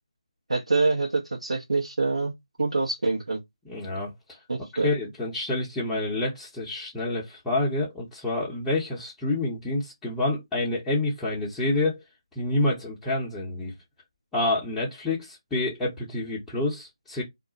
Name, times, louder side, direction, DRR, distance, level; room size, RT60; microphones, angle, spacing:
voice 1, 0.5-2.3 2.6-3.4 4.5-4.9, right 3 dB, 75° right, 0.9 m, -25 dB
voice 2, 3.7-4.4 4.8-12.0 12.4-13.7 14.3-17.2, left 2 dB, 5° left, 0.6 m, -28 dB
2.4 x 2.1 x 3.8 m
figure-of-eight pair, 160°, 3 cm